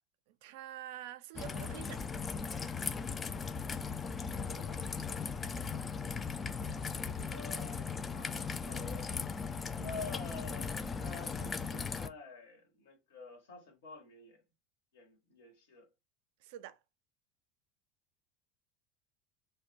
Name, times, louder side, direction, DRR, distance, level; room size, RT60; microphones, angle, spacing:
voice 1, 0.4-2.0 16.4-16.8, right 13 dB, 70° right, 0.3 m, -46 dB
Raindrop / Trickle dribble, 1.3-12.1, left 5 dB, 25° left, 0.3 m, -38 dB
voice 2, 7.3-9.1 9.7-14.4 14.9-15.8, left 3 dB, 75° left, 1.2 m, -48 dB
2.3 x 2.2 x 3.8 m
hypercardioid pair, 85°, 0 cm